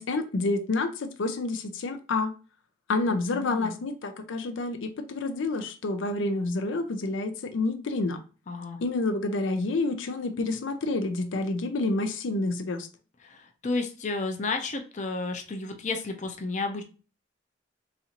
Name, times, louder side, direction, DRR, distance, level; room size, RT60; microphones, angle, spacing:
voice 1, 0.0-2.3 2.9-8.2 8.8-12.9, left 2 dB, 85° left, 0.5 m, -28 dB
voice 2, 3.1-3.8 8.5-8.8 13.2-16.8, left 3 dB, 40° left, 0.5 m, -32 dB
4.1 x 2.5 x 2.8 m
head